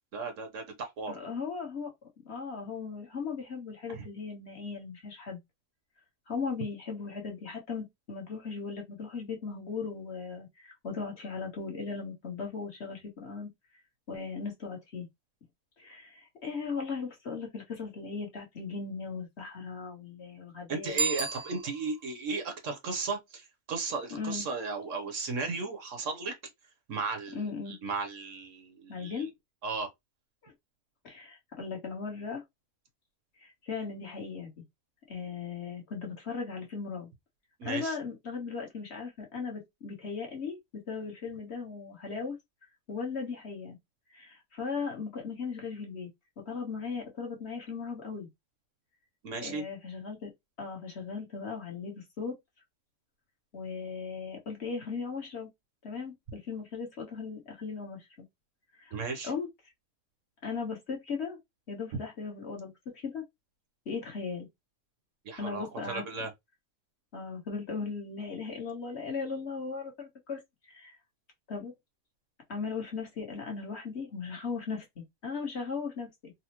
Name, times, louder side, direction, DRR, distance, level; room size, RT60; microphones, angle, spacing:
voice 1, 0.1-1.1 3.9-4.0 20.7-26.3 26.9-29.3 29.6-29.9 37.6-37.9 49.2-49.6 58.9-59.3 65.2-66.3, right 4 dB, 60° right, 1.1 m, -35 dB
voice 2, 1.1-1.9 2.2-5.4 6.3-13.5 14.1-15.1 15.8-21.0 24.1-24.4 27.3-27.8 28.9-29.3 30.4-30.5 31.0-32.4 33.4-34.5 35.1-37.1 37.6-40.6 40.9-42.4 42.9-43.8 44.1-46.1 46.4-48.3 49.4-50.3 50.6-52.4 53.5-55.5 55.8-58.1 58.8-59.0 59.2-59.5 60.4-61.4 61.7-63.2 63.8-64.5 65.4-66.0 67.1-70.4 70.7-71.0 71.5-71.7 72.5-76.3, left 5 dB, 50° left, 1.3 m, -37 dB
Bicycle bell, 20.9-22.1, right 2 dB, 80° right, 1.4 m, -33 dB
4.1 x 2.1 x 2.9 m
omnidirectional pair, 1.6 m